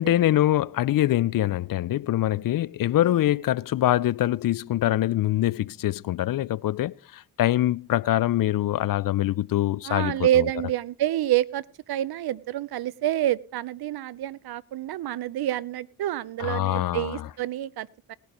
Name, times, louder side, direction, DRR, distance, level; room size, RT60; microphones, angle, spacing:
voice 1, 0.0-10.5 16.4-17.3, left 14 dB, 50° left, 0.6 m, -24 dB
voice 2, 9.9-18.1, right 13 dB, 60° right, 0.7 m, -28 dB
19.5 x 11.0 x 3.0 m
hypercardioid pair, 45°, 43 cm